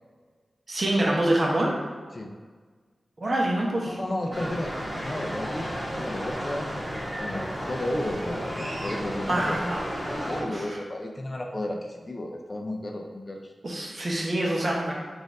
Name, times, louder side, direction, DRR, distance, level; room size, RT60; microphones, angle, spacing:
voice 1, 0.7-1.7 3.2-4.0 4.4-4.5 9.3-9.8 10.5-10.8 13.6-14.9, right 1 dB, 40° right, -2 dB, 0.9 m, -26 dB
voice 2, 3.9-4.7 5.0-6.7 7.2-9.6 10.1-13.5, left 1 dB, 35° left, 2 dB, 0.5 m, -33 dB
sound 1, 4.3-10.4, equal, ahead, 1.4 m, -33 dB
4.3 x 2.6 x 4.7 m, 1.5 s
wide cardioid pair, 90°, 0 cm